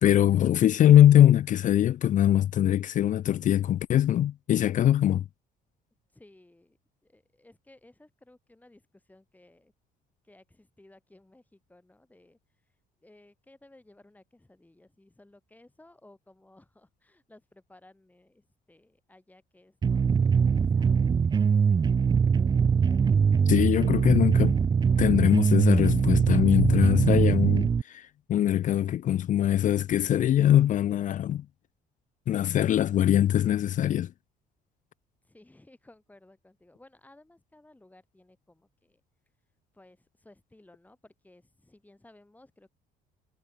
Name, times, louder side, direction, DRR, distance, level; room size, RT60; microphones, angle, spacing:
voice 1, 0.0-5.2 23.5-24.6 25.0-31.5 32.3-34.1, left 11 dB, 50° left, 0.5 m, -22 dB
voice 2, 6.1-6.8 7.0-9.7 10.2-21.1 35.2-39.0 39.7-42.7, left 1 dB, 10° left, 8.0 m, -58 dB
sound 1, 19.8-27.8, right 6 dB, 25° right, 0.5 m, -22 dB
cardioid pair, 110°, 17 cm